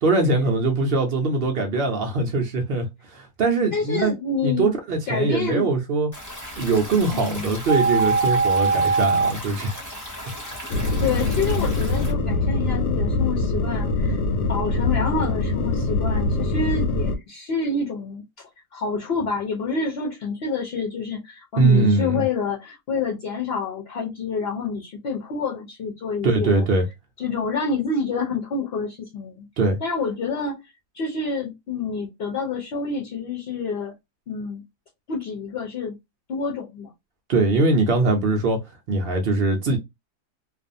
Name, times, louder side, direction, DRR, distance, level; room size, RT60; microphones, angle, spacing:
voice 1, 0.0-4.1 4.4-6.1 6.6-9.7 10.7-10.9 21.6-22.2 26.2-26.9 29.6-29.8 37.3-38.6 38.9-39.8, right 3 dB, 90° right, 0.5 m, -22 dB
voice 2, 3.7-4.7 5.1-5.7 7.1-7.6 11.0-14.2 14.5-18.2 18.7-26.6 27.2-29.5 29.8-33.9 34.3-34.6 35.1-35.9 36.3-36.9, left 4 dB, 60° left, 0.7 m, -28 dB
Stream, 6.1-12.1, equal, 15° left, 0.6 m, -36 dB
sound 1, 7.7-9.3, right 4 dB, 70° right, 0.9 m, -20 dB
sound 2, 10.7-17.2, left 2 dB, 90° left, 1.2 m, -23 dB
2.5 x 2.4 x 2.5 m
omnidirectional pair, 1.7 m